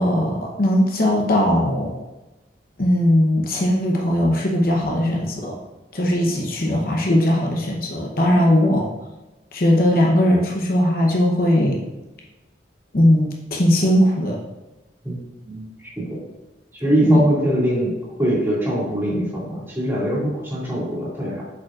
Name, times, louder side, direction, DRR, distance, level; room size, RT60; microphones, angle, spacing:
voice 1, 0.0-2.0 2.8-5.6 5.9-8.9 9.5-11.8 12.9-14.4 17.0-17.2, left 1 dB, 50° left, -1 dB, 0.8 m, -19 dB
voice 2, 16.8-17.9 18.2-21.4, right 1 dB, 10° right, -8 dB, 2.2 m, -22 dB
8.0 x 5.2 x 2.5 m, 1.1 s
head